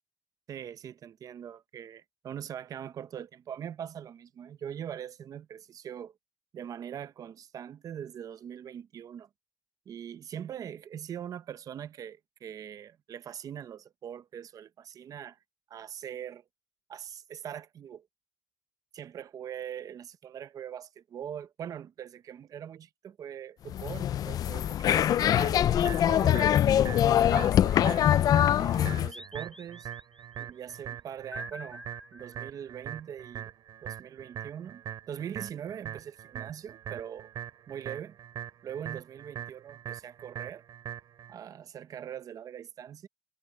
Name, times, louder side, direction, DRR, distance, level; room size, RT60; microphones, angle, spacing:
voice 1, 0.5-6.1 6.5-9.3 9.9-15.4 15.7-16.4 16.9-18.1 18.9-25.7 26.0-28.1 28.6-29.9 30.4-31.8 32.1-33.5 33.8-37.3 37.7-38.2 38.6-40.6 41.3-43.1, right 9 dB, 60° right, 0.7 m, -42 dB
sound 1, 23.7-29.1, left 11 dB, 65° left, 0.4 m, -23 dB
sound 2, 25.4-41.3, right 10 dB, 90° right, 2.6 m, -42 dB
sound 3, 27.3-28.4 29.1-30.2 31.3-32.8, left 1 dB, 5° left, 7.4 m, -48 dB
wide cardioid pair, 150°, 7 cm